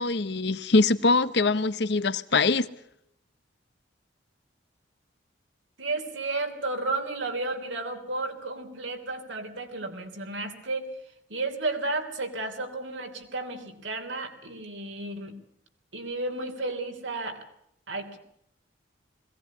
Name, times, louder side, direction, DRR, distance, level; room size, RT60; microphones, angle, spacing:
voice 1, 0.0-2.7, left 3 dB, 60° left, 0.9 m, -23 dB
voice 2, 5.8-10.9 11.3-15.4 15.9-17.4 17.9-18.2, right 2 dB, 75° right, 3.3 m, -33 dB
21.5 x 17.5 x 9.5 m
head